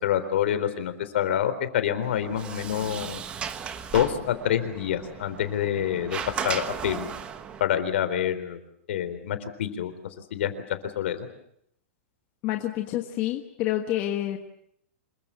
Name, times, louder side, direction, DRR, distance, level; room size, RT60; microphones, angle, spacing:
voice 1, 0.0-3.2 3.9-6.2 6.4-7.1 7.6-8.6 8.9-9.9 10.3-10.5 11.0-11.3, left 10 dB, 60° left, 11 dB, 3.8 m, -27 dB
Sliding door, 2.0-7.6, right 7 dB, 15° right, 1.1 m, -36 dB
voice 2, 12.4-14.4, left 13 dB, 25° left, 4 dB, 1.4 m, -28 dB
27.0 x 23.0 x 7.6 m, 0.73 s
supercardioid pair, 180°, 7 cm